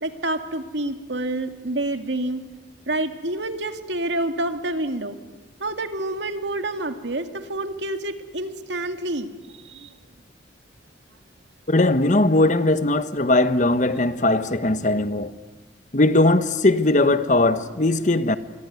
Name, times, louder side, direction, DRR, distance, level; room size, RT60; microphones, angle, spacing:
voice 1, 0.0-2.4 2.9-5.2 5.6-9.3 9.6-9.9, right 1 dB, 75° right, 2.3 m, -28 dB
voice 2, 11.7-15.3 15.9-18.4, left 2 dB, 40° left, 1.2 m, -19 dB
27.0 x 23.0 x 9.5 m
head